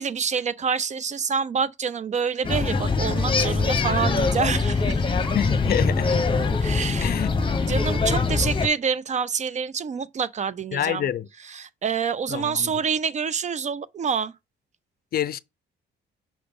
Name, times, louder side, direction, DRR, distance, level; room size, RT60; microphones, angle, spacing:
voice 1, 0.0-5.0 6.6-7.1 7.7-11.1 11.5-14.3, right 6 dB, 35° right, 0.4 m, -27 dB
sound 1, 2.4-8.7, left 4 dB, 25° left, 0.9 m, -23 dB
voice 2, 5.3-6.2 7.0-7.3 10.7-11.3 12.3-12.7 15.1-15.4, left 10 dB, 50° left, 0.4 m, -27 dB
6.0 x 4.9 x 3.5 m
cardioid pair, 90°, 20 cm